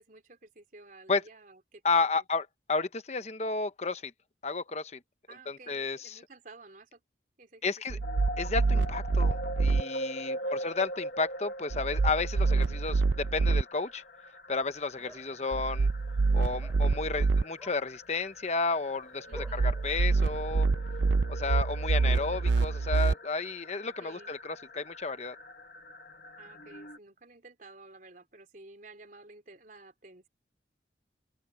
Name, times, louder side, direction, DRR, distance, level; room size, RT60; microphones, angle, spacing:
voice 1, 0.0-2.3 5.3-7.0 7.4-8.0 10.3-10.7 15.0-15.2 19.3-19.7 24.0-24.3 26.4-30.3, right 3 dB, 45° right, 3.6 m, -53 dB
voice 2, 1.8-4.1 4.4-5.0 5.5-6.2 7.6-8.0 8.4-14.0 14.5-15.9 16.3-20.7 21.3-25.4, left 4 dB, 40° left, 0.8 m, -32 dB
sound 1, 7.9-9.8 11.7-13.6 15.5-17.4 19.3-23.1, right 4 dB, 75° right, 0.5 m, -26 dB
sound 2, 8.0-27.0, left 1 dB, 55° left, 1.4 m, -43 dB
sound 3, 14.5-20.4, equal, ahead, 5.1 m, -54 dB
open air
head